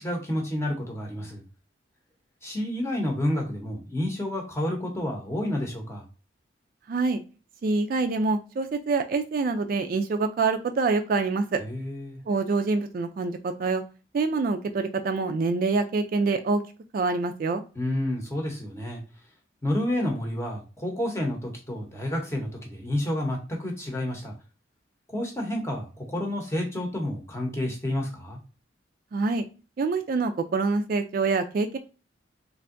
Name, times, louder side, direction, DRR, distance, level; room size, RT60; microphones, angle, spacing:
voice 1, 0.0-1.4 2.4-6.0 11.6-12.2 17.8-19.0 19.6-24.3 25.1-28.4, left 1 dB, 15° left, 1 dB, 0.8 m, -30 dB
voice 2, 6.9-7.2 7.6-11.6 12.3-13.8 14.1-16.6 16.9-17.6 29.1-29.5 29.8-31.8, right 3 dB, 50° right, 7 dB, 0.3 m, -26 dB
3.3 x 2.6 x 2.5 m, 0.34 s
head